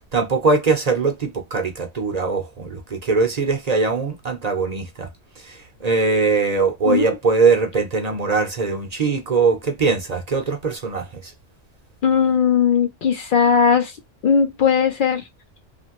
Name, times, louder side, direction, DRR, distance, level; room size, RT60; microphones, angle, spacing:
voice 1, 0.1-5.1 5.4-11.3, right 4 dB, 40° right, 0.8 m, -21 dB
voice 2, 6.9-7.2 12.0-14.0 14.2-15.2, left 6 dB, 60° left, 0.6 m, -18 dB
2.9 x 2.5 x 2.9 m
omnidirectional pair, 1.1 m